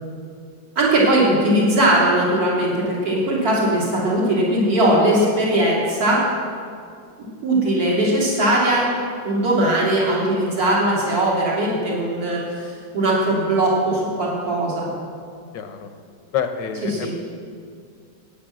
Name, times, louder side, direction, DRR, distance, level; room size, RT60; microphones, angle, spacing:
voice 1, 0.7-6.2 7.4-8.9 9.2-14.9 16.9-17.1, right 1 dB, 55° right, -5 dB, 3.4 m, -19 dB
voice 2, 15.5-15.9 16.3-17.1, left 8 dB, 80° left, 7 dB, 1.7 m, -27 dB
12.0 x 9.5 x 7.7 m, 2.2 s
omnidirectional pair, 1.9 m